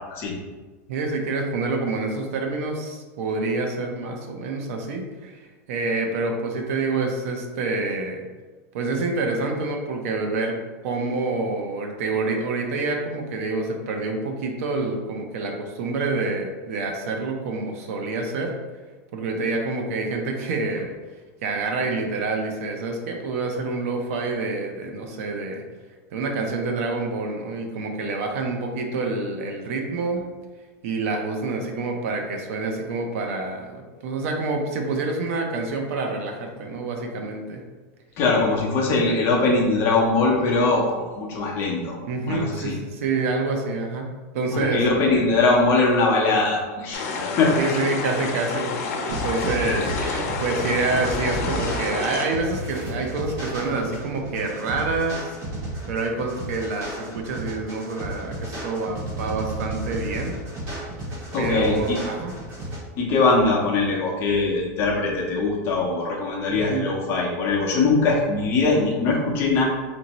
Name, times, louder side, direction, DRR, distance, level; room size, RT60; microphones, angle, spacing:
voice 1, 0.9-5.4 5.7-8.2 8.7-10.6 10.8-18.5 19.1-20.9 21.4-25.6 26.1-30.2 30.8-37.6 42.1-44.8 47.6-48.8 49.1-49.8 50.4-55.4 55.8-60.4 61.4-62.3 66.5-66.9, right 3 dB, 65° right, 3 dB, 0.6 m, -27 dB
voice 2, 38.2-42.0 42.3-42.7 44.5-47.5 49.6-49.8 61.3-62.0 63.0-69.6, left 3 dB, 30° left, -2 dB, 0.7 m, -21 dB
sound 1, 46.9-52.3, left 4 dB, 80° left, 0.6 m, -29 dB
sound 2, 49.1-62.8, right 1 dB, 45° right, 1.5 m, -33 dB
4.3 x 2.6 x 2.9 m, 1.3 s
supercardioid pair, 175°, 8 cm